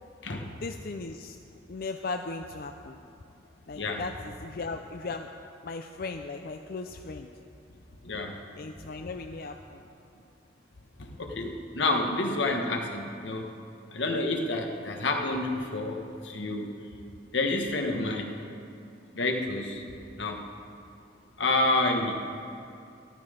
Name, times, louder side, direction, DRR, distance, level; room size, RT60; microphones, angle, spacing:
voice 1, 0.6-1.4 1.7-3.0 3.7-5.3 5.6-7.3 8.5-9.8, left 3 dB, 55° left, 5 dB, 0.5 m, -37 dB
voice 2, 8.0-8.4 11.0-13.5 13.9-16.7 17.3-18.3 19.1-19.8 20.1-20.5 21.4-22.1, left 2 dB, 85° left, 3 dB, 1.4 m, -29 dB
14.0 x 12.5 x 5.1 m, 2.6 s
head